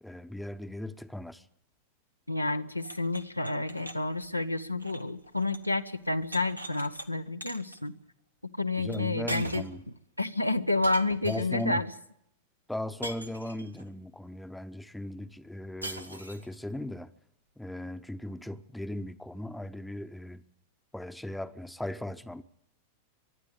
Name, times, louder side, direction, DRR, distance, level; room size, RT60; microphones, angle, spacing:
voice 1, 0.0-1.4 8.8-9.8 11.2-11.8 12.7-17.1 17.6-20.4 20.9-22.4, left 1 dB, 5° left, 0.9 m, -38 dB
voice 2, 2.3-7.9 8.6-9.7 10.2-11.9, left 2 dB, 90° left, 0.8 m, -30 dB
sound 1, 2.8-5.7 6.0-7.1 7.4-7.8 8.9-9.0 9.3-9.8 10.8-11.7 13.0-13.8 15.8-16.6, right 1 dB, 85° right, 1.2 m, -42 dB
24.0 x 11.5 x 9.9 m
figure-of-eight pair, 90°, 0 cm